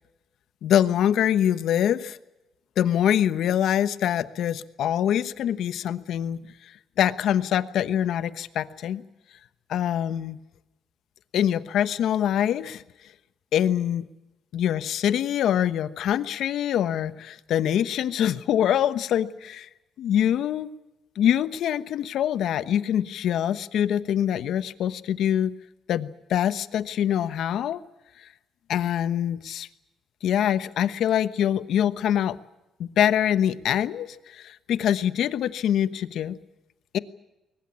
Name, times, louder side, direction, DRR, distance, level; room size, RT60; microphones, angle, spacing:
voice 1, 0.6-2.2 2.8-9.0 9.7-10.4 11.3-12.8 13.5-14.1 14.5-19.7 20.0-20.7 21.2-25.5 25.9-27.8 28.2-28.3 28.7-29.7 30.2-32.4 32.8-36.4 36.9-37.0, left 10 dB, 75° left, 14 dB, 1.1 m, -24 dB
22.5 x 20.0 x 8.4 m, 0.98 s
cardioid pair, 90°, 0 cm